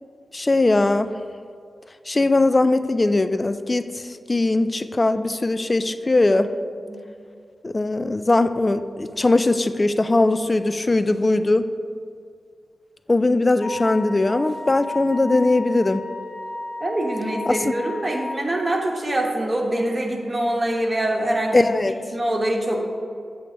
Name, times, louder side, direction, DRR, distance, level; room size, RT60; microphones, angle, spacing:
voice 1, 0.3-1.1 2.1-4.0 4.3-6.5 7.6-11.7 13.1-16.0 17.5-17.7 21.5-21.9, left 2 dB, 30° left, 11 dB, 0.3 m, -20 dB
Wind instrument woodwind instrument, 13.6-18.4, left 2 dB, 85° left, 0.9 m, -34 dB
voice 2, 16.8-22.9, right 1 dB, 25° right, 0 dB, 1.0 m, -24 dB
7.6 x 3.3 x 6.0 m, 2.3 s
wide cardioid pair, 90°, 0 cm